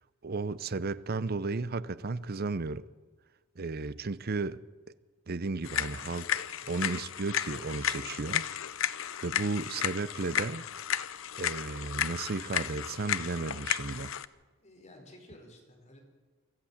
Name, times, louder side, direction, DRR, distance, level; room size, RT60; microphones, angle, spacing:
voice 1, 0.2-2.8 3.6-4.6 5.3-8.4 9.2-10.6 11.4-14.1, right 3 dB, 50° right, 0.7 m, -34 dB
sound 1, 5.6-14.3, left 9 dB, 75° left, 0.7 m, -34 dB
voice 2, 14.6-16.0, left 1 dB, 35° left, 4.9 m, -53 dB
24.5 x 15.0 x 7.3 m
head